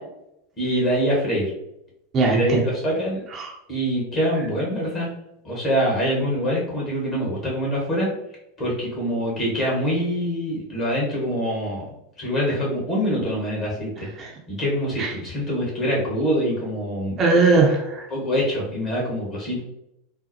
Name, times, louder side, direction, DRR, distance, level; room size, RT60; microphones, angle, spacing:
voice 1, 0.6-1.5 2.3-3.2 3.7-5.1 5.4-8.1 8.6-11.8 12.2-14.1 14.5-17.2 18.1-19.6, equal, 30° left, -4 dB, 1.2 m, -24 dB
voice 2, 2.1-2.7 3.3-3.5 14.2-14.3 15.0-15.1 17.2-18.1, right 3 dB, 30° right, 0 dB, 0.6 m, -19 dB
3.9 x 2.0 x 2.8 m, 0.83 s
figure-of-eight pair, 85°, 0 cm